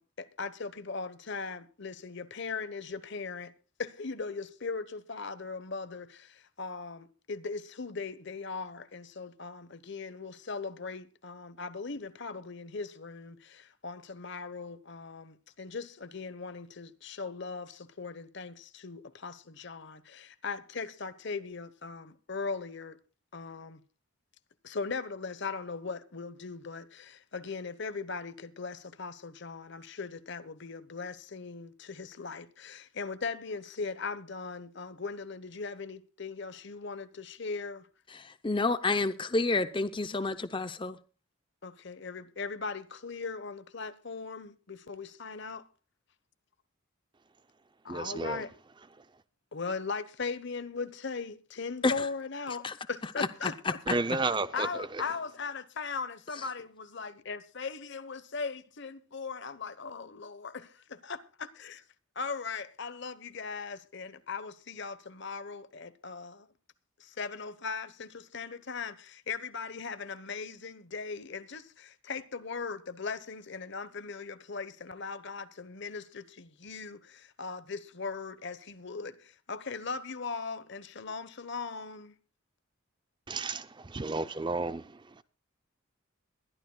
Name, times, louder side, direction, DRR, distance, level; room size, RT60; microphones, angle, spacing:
voice 1, 0.0-3.5 3.8-23.0 23.3-23.8 24.6-37.9 41.6-45.6 47.8-48.5 49.5-53.5 54.5-61.8 62.1-66.5 67.0-82.2, left 4 dB, 55° left, 1.0 m, -39 dB
voice 2, 38.1-41.0 51.8-52.1 52.5-52.8 53.0-54.2 56.3-56.5, left 3 dB, 25° left, 0.6 m, -30 dB
voice 3, 47.9-48.4 53.9-54.9 83.3-84.8, right 3 dB, 20° right, 0.5 m, -32 dB
22.0 x 12.0 x 2.3 m
head